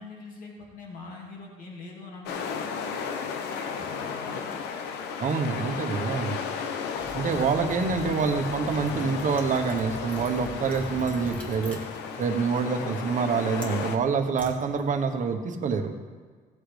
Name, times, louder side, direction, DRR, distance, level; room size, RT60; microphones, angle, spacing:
voice 1, 0.0-2.7 3.0-4.5, left 3 dB, 55° left, -1 dB, 2.3 m, -43 dB
sound 1, 2.3-14.0, left 6 dB, 85° left, 0.9 m, -34 dB
voice 2, 5.2-6.3 7.1-11.8 12.2-15.9, right 5 dB, 50° right, 5 dB, 1.2 m, -26 dB
Liquid, 6.9-15.2, equal, 10° left, 2.2 m, -43 dB
16.5 x 8.1 x 3.4 m, 1.5 s
cardioid pair, 110°, 17 cm